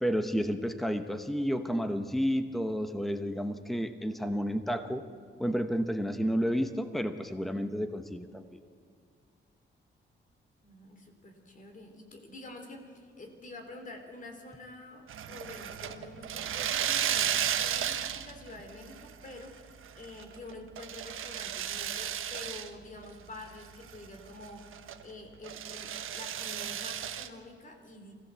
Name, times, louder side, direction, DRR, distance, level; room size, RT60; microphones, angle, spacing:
voice 1, 0.0-5.0 5.4-8.6, equal, ahead, 8 dB, 1.0 m, -31 dB
voice 2, 10.6-25.9 26.1-28.1, left 2 dB, 40° left, 4 dB, 3.3 m, -47 dB
sound 1, 15.1-18.5 18.8-19.4 19.9-22.7 23.0-23.1 23.5-25.0 25.4-27.3, right 9 dB, 85° right, 1.2 m, -34 dB
24.5 x 16.0 x 8.2 m, 2.1 s
wide cardioid pair, 140°, 20 cm